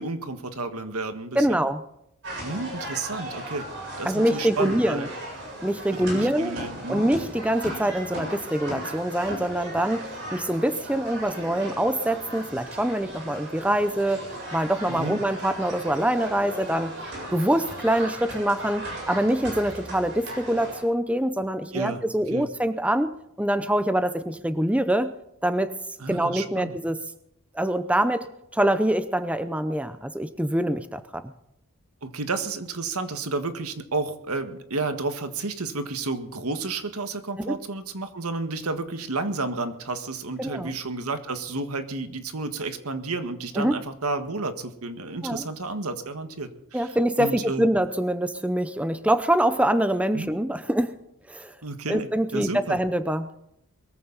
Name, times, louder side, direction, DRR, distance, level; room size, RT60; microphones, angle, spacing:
voice 1, 0.0-1.6 2.4-3.7 4.0-5.1 5.9-7.0 14.9-15.2 21.7-22.0 22.3-22.5 26.0-26.8 32.0-46.9 47.2-47.6 50.1-50.3 51.6-52.8, right 3 dB, 85° right, 8 dB, 1.7 m, -31 dB
voice 2, 1.3-1.8 4.0-5.1 5.6-6.6 6.9-10.0 10.3-14.2 14.5-16.9 17.3-25.1 25.4-25.7 26.1-27.0 27.5-31.2 37.4-37.6 40.4-40.7 43.6-43.8 45.2-45.5 46.7-51.0 51.3-51.5 51.9-53.3, right 1 dB, 5° right, 11 dB, 0.6 m, -24 dB
sound 1, 2.2-20.8, right 1 dB, 55° right, 7.8 m, -37 dB
21.5 x 14.5 x 4.1 m, 0.77 s
head